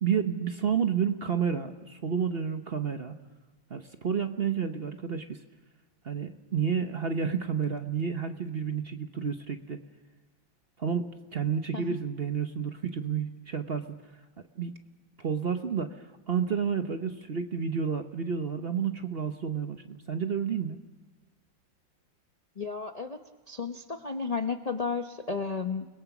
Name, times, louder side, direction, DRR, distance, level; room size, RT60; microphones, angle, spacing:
voice 1, 0.0-3.1 3.7-5.4 6.0-9.8 10.8-14.0 14.6-14.7 15.2-20.8, right 7 dB, 45° right, 7 dB, 0.8 m, -30 dB
voice 2, 22.6-23.2 23.5-25.9, left 5 dB, 75° left, 7 dB, 0.3 m, -33 dB
29.5 x 21.0 x 6.0 m, 1.3 s
omnidirectional pair, 2.1 m